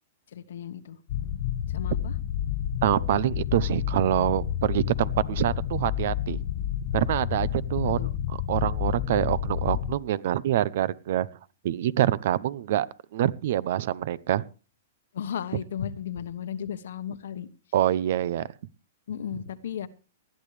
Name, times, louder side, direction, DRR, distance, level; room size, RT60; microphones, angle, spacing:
voice 1, 0.3-1.0 1.7-2.2 7.8-8.1 15.1-17.5 19.1-19.9, left 9 dB, 75° left, 12 dB, 1.2 m, -35 dB
sound 1, 1.1-9.9, left 10 dB, 50° left, 0.9 m, -30 dB
voice 2, 2.8-6.4 6.9-8.0 8.5-11.3 11.6-12.9 13.1-14.4 17.7-18.5, right 12 dB, 60° right, 21 dB, 0.8 m, -25 dB
19.5 x 12.5 x 3.3 m, 0.34 s
hypercardioid pair, 145°, 0 cm